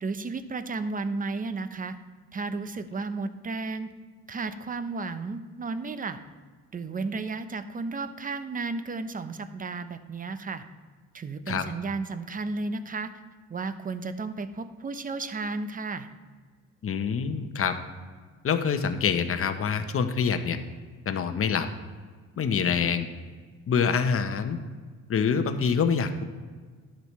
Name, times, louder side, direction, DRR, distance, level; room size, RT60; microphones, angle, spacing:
voice 1, 0.0-2.0 2.3-3.9 4.3-6.2 6.7-10.6 11.1-13.1 13.5-16.1, right 3 dB, 30° right, 11 dB, 0.7 m, -33 dB
voice 2, 16.8-17.7 18.4-20.6 21.1-21.7 22.4-23.1 23.7-24.6 25.1-26.2, left 6 dB, 45° left, 8 dB, 0.9 m, -25 dB
11.5 x 7.5 x 3.2 m, 1.5 s
cardioid pair, 90°, 30 cm